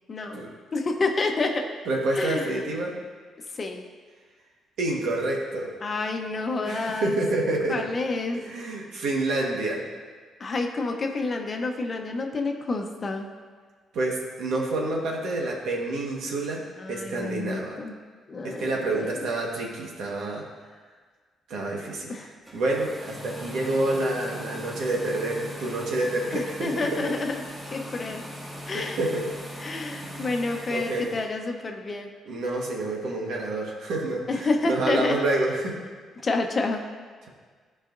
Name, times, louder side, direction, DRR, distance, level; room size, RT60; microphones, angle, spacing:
voice 1, 0.1-0.4 0.7-1.7 2.1-2.5 3.6-3.8 5.8-7.2 7.7-8.4 10.4-13.3 16.8-18.0 18.3-19.1 22.1-22.3 26.3-27.3 27.7-28.2 28.7-29.0 29.6-32.1 34.3-35.2 36.2-36.8, left 3 dB, 40° left, 4 dB, 0.8 m, -29 dB
voice 2, 1.9-3.0 4.8-5.8 6.6-7.9 8.3-9.8 13.9-17.8 18.4-20.4 21.5-26.9 28.7-29.2 30.0-30.3 30.7-31.1 32.3-35.8, right 2 dB, 75° right, -1 dB, 1.4 m, -28 dB
sound 1, 22.4-31.3, equal, 15° right, 1.9 m, -39 dB
13.0 x 4.9 x 2.6 m, 1.5 s
cardioid pair, 90°, 0 cm